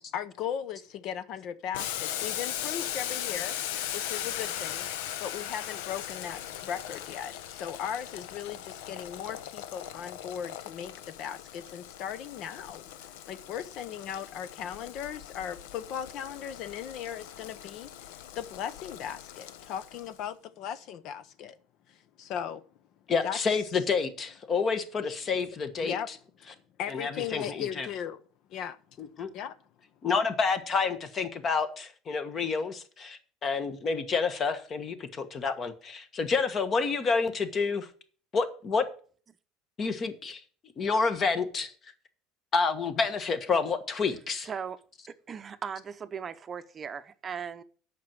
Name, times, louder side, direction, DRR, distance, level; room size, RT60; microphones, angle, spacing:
voice 1, 0.1-3.5 3.9-4.9 5.2-21.6 21.9-22.6 23.2-23.4 25.8-26.1 26.8-28.2 28.5-28.8 29.3-29.6, left 9 dB, 55° left, 0.7 m, -37 dB
Boiling, 1.7-20.2, left 11 dB, 85° left, 0.8 m, -39 dB
voice 2, 23.1-25.9 26.9-27.9 29.0-29.3 30.0-37.9 38.3-38.8 39.8-40.4 40.8-41.7 42.5-44.5, left 5 dB, 30° left, 1.4 m, -29 dB
voice 3, 44.4-44.8 45.3-47.6, right 7 dB, 30° right, 0.7 m, -38 dB
8.5 x 6.0 x 7.7 m
cardioid pair, 130°, 0 cm